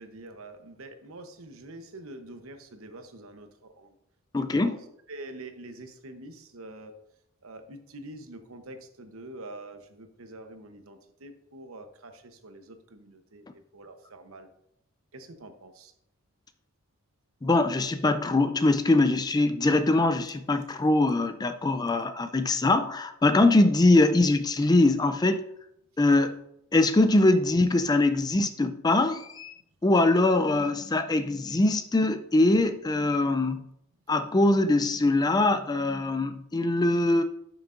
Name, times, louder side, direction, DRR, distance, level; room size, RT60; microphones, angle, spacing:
voice 1, 0.0-3.9 4.4-4.8 5.1-6.9 7.4-13.4 13.7-14.5 15.1-15.9, right 2 dB, 75° right, 7 dB, 0.9 m, -45 dB
voice 2, 4.3-4.8 17.4-25.4 26.0-26.4 26.7-29.5 29.8-33.6 34.1-37.2, left 2 dB, 20° left, 9 dB, 0.4 m, -22 dB
11.5 x 6.1 x 2.5 m, 0.77 s
head